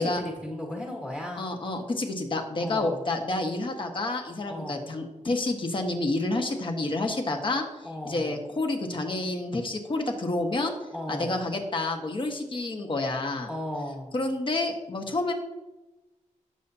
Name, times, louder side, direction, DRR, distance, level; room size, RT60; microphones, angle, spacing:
voice 1, 0.0-1.4 2.6-3.0 4.5-4.8 7.8-8.4 10.9-11.4 13.5-14.1, left 1 dB, 10° left, -1 dB, 1.5 m, -36 dB
voice 2, 1.4-7.6 8.0-10.7 11.1-13.5 14.1-15.3, left 2 dB, 40° left, 3 dB, 1.5 m, -29 dB
18.0 x 6.9 x 2.8 m, 1.1 s
wide cardioid pair, 130°, 13 cm